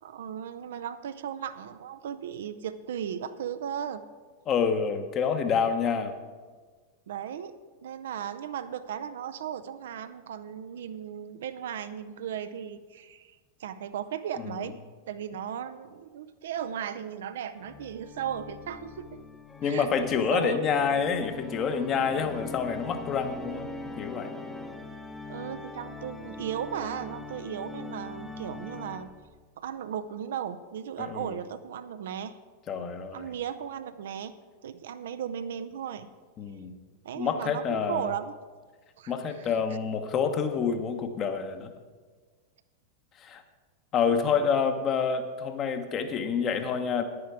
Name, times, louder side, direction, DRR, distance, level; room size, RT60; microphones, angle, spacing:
voice 1, 0.0-4.0 7.1-7.6 7.8-14.8 15.1-19.2 19.6-20.6 25.3-29.1 29.6-32.3 33.1-34.4 34.6-36.1 37.0-38.3 39.0-39.1 44.3-44.4, right 9 dB, 60° right, 11 dB, 0.5 m, -36 dB
voice 2, 4.5-6.1 14.4-14.7 19.6-23.7 24.0-24.3 31.0-31.4 32.7-33.3 36.4-36.7 37.2-38.1 39.1-41.7 43.2-43.4 43.9-47.1, left 6 dB, 30° left, 7 dB, 1.0 m, -28 dB
Organ, 17.6-29.4, left 3 dB, 10° left, 0.8 m, -41 dB
10.0 x 9.8 x 4.7 m, 1.4 s
figure-of-eight pair, 90°, 0 cm